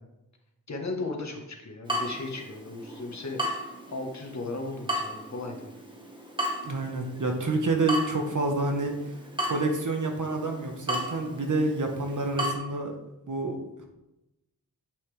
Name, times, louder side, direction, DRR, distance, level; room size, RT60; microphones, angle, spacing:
voice 1, 0.7-5.7 8.7-8.9, left 2 dB, 45° left, 2 dB, 1.3 m, -36 dB
Water tap faucet / Drip, 1.9-12.5, equal, 15° right, 1.5 m, -35 dB
voice 2, 6.6-9.1 9.4-13.0 13.3-13.8, right 2 dB, 55° right, 3 dB, 1.3 m, -28 dB
8.8 x 5.6 x 3.4 m, 0.94 s
wide cardioid pair, 90°, 37 cm